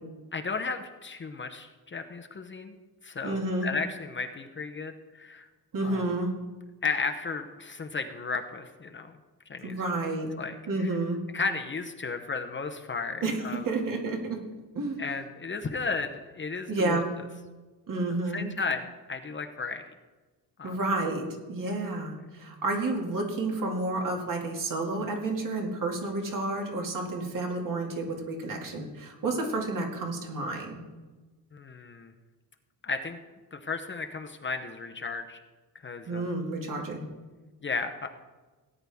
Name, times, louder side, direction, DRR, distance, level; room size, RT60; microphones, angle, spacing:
voice 1, 0.3-2.8 3.0-5.5 5.8-6.0 6.8-9.2 9.5-9.8 10.4-10.9 11.3-13.6 15.0-17.0 18.3-19.8 20.6-20.8 31.5-32.1 32.8-33.2 33.5-35.4 35.8-36.3 37.6-38.1, left 4 dB, 30° left, 6 dB, 0.7 m, -34 dB
voice 2, 3.2-3.7 5.7-6.3 9.6-10.3 10.7-11.2 13.2-14.4 14.7-15.0 16.7-17.1 17.9-18.5 20.6-30.8 36.1-37.0, right 2 dB, 55° right, 1 dB, 2.3 m, -30 dB
17.5 x 9.8 x 3.5 m, 1.3 s
wide cardioid pair, 145°, 39 cm